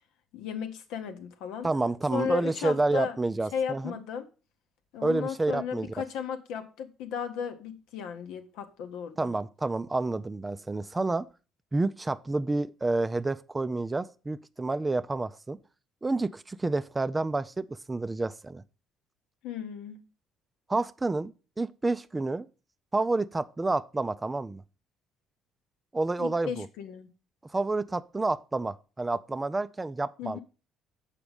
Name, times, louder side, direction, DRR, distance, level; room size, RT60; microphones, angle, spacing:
voice 1, 0.3-1.7 2.1-3.2 3.5-4.3 4.9-9.3 19.4-20.1 26.2-27.1 30.2-30.4, left 7 dB, 70° left, 0.8 m, -35 dB
voice 2, 1.6-4.0 5.0-5.9 9.2-11.3 11.7-15.6 16.0-18.6 20.7-22.5 22.9-24.6 25.9-26.7 27.5-30.4, right 2 dB, 20° right, 0.4 m, -29 dB
6.9 x 5.0 x 5.1 m
hypercardioid pair, 55°, 0 cm